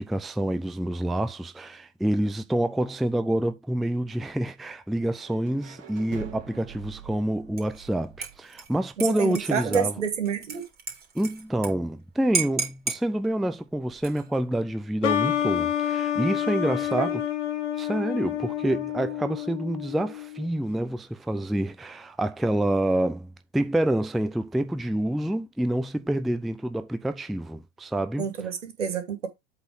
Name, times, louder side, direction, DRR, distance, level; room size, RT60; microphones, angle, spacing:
voice 1, 0.0-10.0 11.1-17.1 17.8-28.3, right 1 dB, ahead, 0.4 m, -27 dB
sound 1, 5.1-9.0, right 9 dB, 45° right, 2.6 m, -45 dB
Dishes pots and pans / Liquid, 7.6-7.9 8.2-11.7 12.0-12.1 12.3-13.0 13.9-14.4, right 4 dB, 25° right, 3.1 m, -33 dB
voice 2, 9.0-10.6 17.0-17.1 28.2-29.3, right 7 dB, 80° right, 2.2 m, -28 dB
sound 2, 15.0-20.5, left 10 dB, 75° left, 1.3 m, -28 dB
8.0 x 4.2 x 4.8 m
figure-of-eight pair, 95°, 36 cm